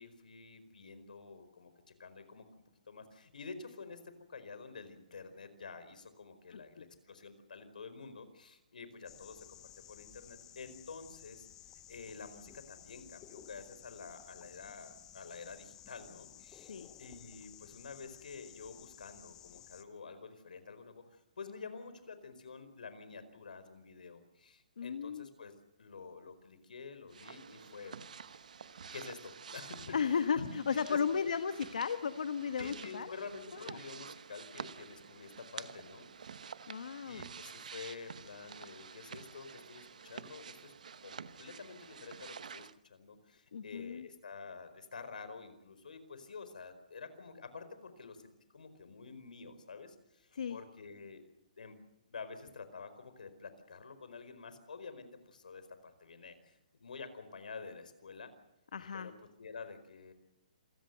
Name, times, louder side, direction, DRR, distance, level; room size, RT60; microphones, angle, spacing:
voice 1, 0.0-2.4 2.9-11.5 11.9-16.7 17.0-25.5 25.8-27.9 28.9-30.1 30.3-31.3 32.6-36.1 36.7-40.7 41.0-51.2 51.6-51.8 52.1-58.3 58.9-60.1, left 4 dB, 85° left, 11 dB, 4.7 m, -49 dB
sound 1, 9.1-19.8, left 11 dB, 10° left, 0.7 m, -55 dB
voice 2, 24.8-25.3 29.9-33.1 33.5-33.8 36.7-37.2 43.5-44.1 50.3-50.6 58.7-59.1, left 6 dB, 70° left, 10 dB, 1.2 m, -35 dB
sound 2, 27.1-42.7, right 6 dB, 65° right, 1.0 m, -49 dB
27.0 x 16.5 x 8.0 m, 0.88 s
hypercardioid pair, 175°, 4 cm